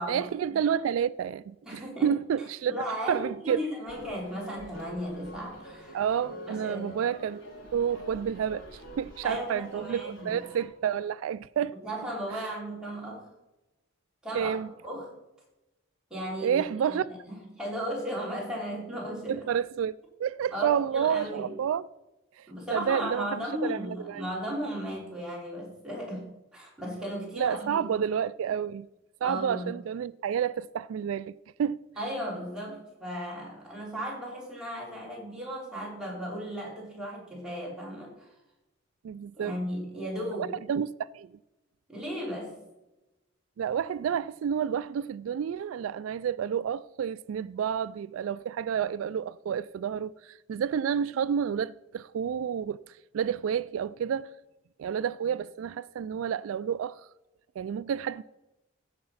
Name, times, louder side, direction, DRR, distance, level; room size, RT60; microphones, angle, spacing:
voice 1, 0.1-2.7 3.1-3.6 5.9-8.6 9.0-11.7 12.3-12.4 14.3-14.7 16.4-17.1 19.3-21.9 22.4-24.2 27.4-28.9 29.2-31.8 39.0-39.6 40.4-41.3 43.6-52.8 53.1-54.3 54.8-57.0 57.6-58.2, right 8 dB, 90° right, 0.3 m, -30 dB
voice 2, 1.7-2.1 2.7-6.0 6.5-7.0 9.2-10.3 11.8-13.3 14.2-14.6 14.8-15.1 16.1-19.4 20.5-21.5 22.5-28.0 29.2-29.7 32.0-38.3 39.4-40.5 41.9-42.6, equal, 5° right, 3.4 m, -36 dB
sound 1, 3.8-10.6, right 1 dB, 70° left, 3.4 m, -46 dB
15.5 x 5.2 x 5.6 m
head